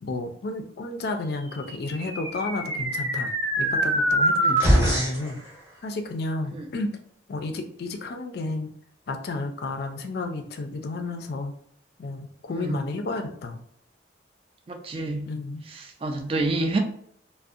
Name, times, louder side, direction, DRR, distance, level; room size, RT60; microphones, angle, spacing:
voice 1, 0.0-3.3 3.6-5.4 5.8-7.0 7.3-8.7 9.1-11.5 12.0-13.6 15.3-15.6, left 2 dB, 55° left, 0.4 m, -32 dB
sound 1, 1.7-5.3, equal, 15° right, 0.7 m, -24 dB
voice 2, 14.7-15.3 16.0-16.8, right 2 dB, 30° right, 0.3 m, -27 dB
2.6 x 2.0 x 2.4 m
head